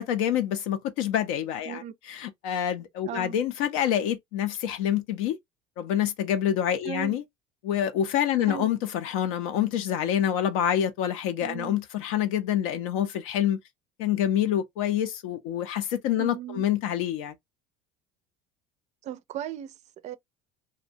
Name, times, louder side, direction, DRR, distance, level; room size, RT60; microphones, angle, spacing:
voice 1, 0.0-1.8 2.1-5.4 5.8-7.2 7.6-13.6 14.0-17.3, left 10 dB, 80° left, 0.5 m, -27 dB
voice 2, 3.0-3.4 6.8-7.2 8.4-8.7 11.4-11.7 16.2-16.7 19.0-19.8 20.0-20.2, right 9 dB, 45° right, 0.4 m, -36 dB
2.6 x 2.1 x 2.6 m
supercardioid pair, 105°, 17 cm